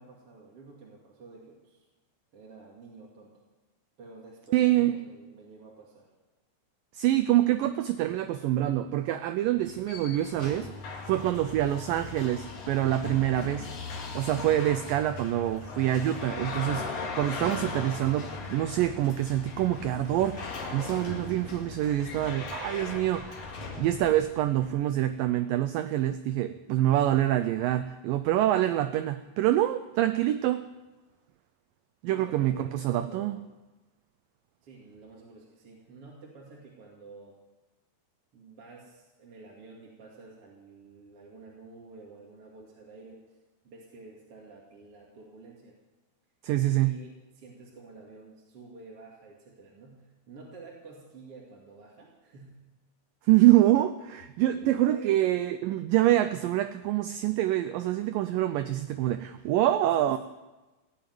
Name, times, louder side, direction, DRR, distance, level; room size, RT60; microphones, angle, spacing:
voice 1, 0.0-1.8 2.3-3.4 4.0-6.1 32.1-33.5 34.6-37.4 38.3-43.2 43.6-45.8 46.8-52.6 54.6-55.3 59.8-60.2, right 3 dB, 40° right, -3 dB, 2.9 m, -49 dB
voice 2, 4.5-4.9 6.9-10.7 11.1-13.7 14.1-30.6 32.0-33.4 46.4-47.0 53.3-60.2, right 13 dB, 85° right, 10 dB, 2.0 m, -26 dB
sound 1, 9.6-24.7, left 4 dB, 60° left, 3.6 m, -39 dB
17.0 x 9.0 x 9.3 m, 1.1 s
omnidirectional pair, 4.7 m